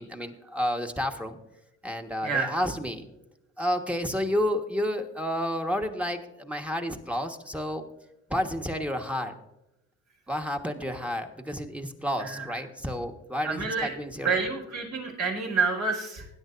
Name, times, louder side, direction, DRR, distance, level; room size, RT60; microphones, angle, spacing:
voice 1, 0.0-1.4 1.8-3.1 3.6-7.8 8.3-9.4 10.3-14.4, equal, 5° right, 4 dB, 1.4 m, -30 dB
voice 2, 2.2-2.5 12.2-12.6 13.4-13.9 14.2-16.3, right 4 dB, 70° right, 0 dB, 4.7 m, -28 dB
20.0 x 10.5 x 2.6 m, 0.90 s
cardioid pair, 90°, 30 cm